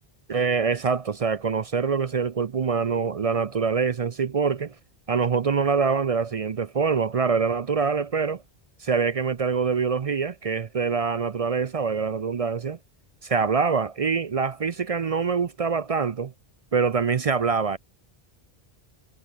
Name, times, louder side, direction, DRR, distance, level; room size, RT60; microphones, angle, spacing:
voice 1, 0.3-4.7 5.1-8.4 8.8-12.8 13.2-16.3 16.7-17.8, right 5 dB, 45° right, 0.5 m, -25 dB
omnidirectional pair, 1.0 m